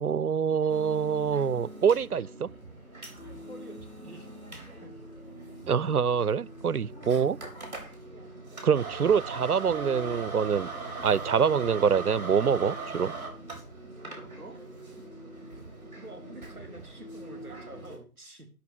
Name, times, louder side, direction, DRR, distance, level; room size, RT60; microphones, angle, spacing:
voice 1, 0.0-2.5 5.7-7.4 8.6-10.7 11.0-13.1, right 7 dB, 90° right, 0.6 m, -25 dB
sound 1, 0.7-18.0, right 3 dB, 30° right, 4.0 m, -41 dB
voice 2, 3.5-4.3 4.8-4.9 5.7-5.9 7.0-7.3 14.3-14.6 16.0-18.5, right 1 dB, 5° right, 2.0 m, -47 dB
11.5 x 6.4 x 6.1 m
figure-of-eight pair, 170°, 44 cm